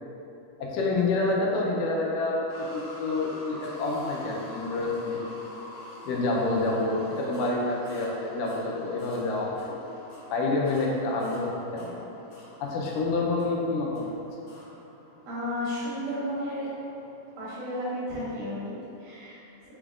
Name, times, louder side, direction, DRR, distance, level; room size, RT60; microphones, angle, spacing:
voice 1, 0.6-5.2 6.1-9.8 10.3-12.0 12.6-14.1, left 2 dB, 85° left, -3 dB, 2.2 m, -28 dB
sound 1, 2.5-17.6 18.2-18.3 18.8-18.9, left 1 dB, 65° left, 1.8 m, -47 dB
voice 2, 15.3-16.7 17.4-19.7, left 1 dB, 75° right, -8 dB, 2.7 m, -33 dB
6.1 x 3.4 x 2.4 m, 2.9 s
omnidirectional pair, 3.7 m